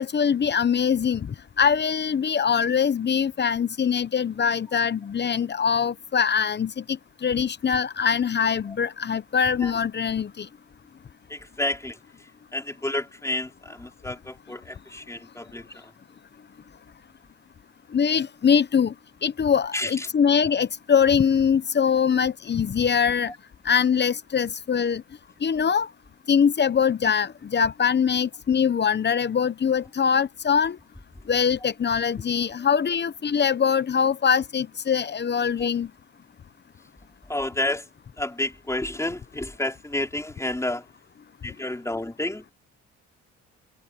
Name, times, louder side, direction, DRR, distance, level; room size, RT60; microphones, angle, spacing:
voice 1, 0.0-10.5 17.9-18.9 19.2-23.3 23.6-25.0 25.4-25.9 26.3-30.8 31.3-35.9, left 7 dB, 35° left, 0.9 m, -23 dB
voice 2, 11.3-15.9 19.7-20.1 23.3-23.4 35.6-35.7 37.3-37.9 38.2-40.9 41.4-42.5, left 1 dB, 10° left, 4.4 m, -30 dB
cardioid pair, 90°, 30 cm